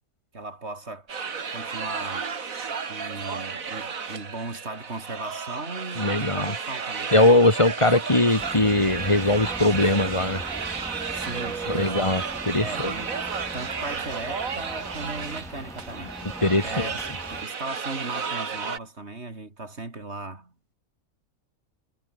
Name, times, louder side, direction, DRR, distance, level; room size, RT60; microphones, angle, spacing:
voice 1, 0.3-1.1 1.5-2.3 2.9-7.1 11.1-12.0 12.6-16.2 16.6-17.0 17.3-20.5, right 2 dB, 55° right, 3.7 m, -37 dB
sound 1, 1.1-18.8, right 5 dB, 80° right, 2.3 m, -33 dB
voice 2, 6.0-6.5 7.1-10.4 11.7-12.9 16.4-16.9, left 2 dB, 20° left, 2.3 m, -21 dB
sound 2, 8.4-17.4, equal, ahead, 3.7 m, -41 dB
omnidirectional pair, 1.4 m